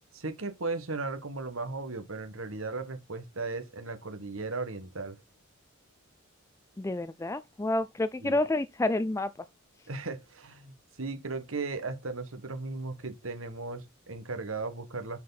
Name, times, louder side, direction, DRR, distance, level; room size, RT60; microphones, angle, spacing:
voice 1, 0.1-5.2 8.2-8.4 9.9-15.2, right 3 dB, 75° right, 1.5 m, -36 dB
voice 2, 6.8-9.3, left 2 dB, 15° left, 0.4 m, -29 dB
10.5 x 4.6 x 4.0 m
head